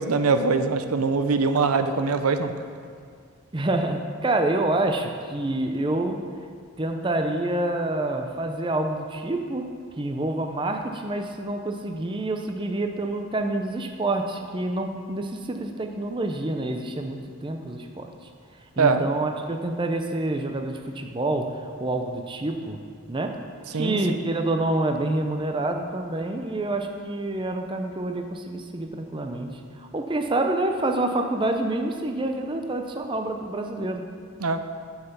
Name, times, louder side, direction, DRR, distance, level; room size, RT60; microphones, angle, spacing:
voice 1, 0.0-2.5 18.8-19.1 23.7-24.2 34.4-34.6, right 4 dB, 90° right, 8 dB, 0.6 m, -22 dB
voice 2, 3.5-6.2 6.8-9.7 10.0-18.1 18.8-22.8 23.1-23.4 23.7-34.0, right 2 dB, 20° right, 4 dB, 0.5 m, -27 dB
9.7 x 5.7 x 6.7 m, 2.1 s
head